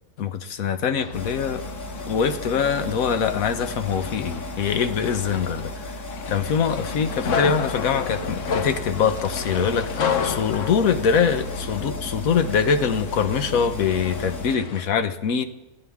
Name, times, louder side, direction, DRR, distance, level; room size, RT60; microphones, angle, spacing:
voice 1, 0.2-1.6 2.1-5.9 6.3-15.4, left 6 dB, 85° left, 9 dB, 1.3 m, -23 dB
sound 1, 1.0-14.8, left 6 dB, 65° left, 1.2 m, -32 dB
sound 2, 1.1-14.6, left 1 dB, 25° left, 0.4 m, -36 dB
20.5 x 15.5 x 3.6 m, 1.0 s
omnidirectional pair, 1.4 m